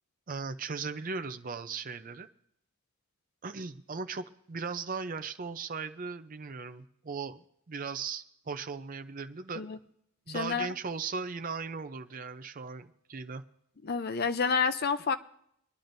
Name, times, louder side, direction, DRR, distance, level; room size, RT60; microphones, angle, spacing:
voice 1, 0.3-2.3 3.4-9.6 10.3-13.4, right 5 dB, 40° right, 0.5 m, -38 dB
voice 2, 10.3-10.7 13.8-15.2, left 5 dB, 45° left, 0.5 m, -29 dB
24.5 x 10.5 x 2.6 m
head